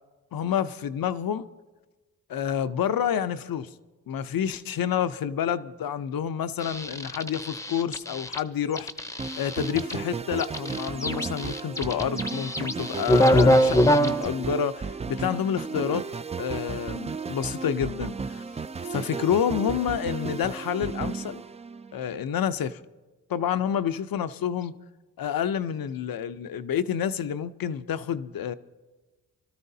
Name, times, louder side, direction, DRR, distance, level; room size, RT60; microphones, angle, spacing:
voice 1, 0.3-1.5 2.3-3.7 4.1-8.9 9.4-16.0 16.4-18.4 18.8-21.4 21.9-22.8 23.3-24.8 25.2-28.5, left 8 dB, 70° left, 0.7 m, -28 dB
sound 1, 6.6-8.4 8.8-9.9 10.4-14.2, equal, 10° left, 0.7 m, -23 dB
sound 2, 9.2-22.1, right 5 dB, 20° right, 0.3 m, -34 dB
27.0 x 13.0 x 2.7 m
cardioid pair, 85°, 37 cm